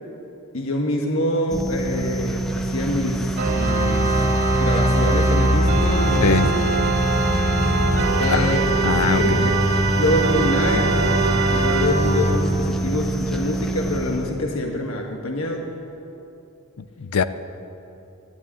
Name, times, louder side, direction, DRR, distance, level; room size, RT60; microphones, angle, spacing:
voice 1, 0.5-4.1 4.6-7.0 8.2-8.7 9.2-9.6 10.0-15.7, left 1 dB, 65° left, 1 dB, 1.4 m, -25 dB
sound 1, 1.5-14.5, right 2 dB, ahead, 0.9 m, -26 dB
Organ, 3.4-12.5, right 1 dB, 50° right, 2.5 m, -21 dB
voice 2, 8.2-8.5 8.8-9.5 16.8-17.2, left 5 dB, 85° left, 12 dB, 0.6 m, -22 dB
11.5 x 11.5 x 9.4 m, 2.8 s
head